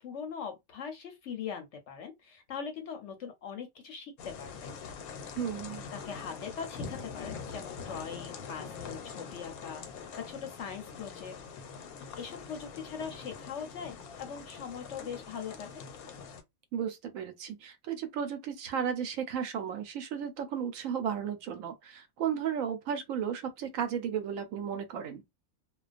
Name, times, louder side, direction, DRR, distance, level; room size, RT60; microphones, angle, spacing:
voice 1, 0.0-4.7 5.9-11.3 11.6-11.8 12.2-15.7, left 7 dB, 65° left, 0.8 m, -41 dB
sound 1, 4.2-16.4, left 5 dB, 90° left, 1.1 m, -44 dB
voice 2, 5.4-5.8 16.7-25.2, right 8 dB, 70° right, 0.9 m, -34 dB
2.3 x 2.2 x 2.4 m
omnidirectional pair, 1.5 m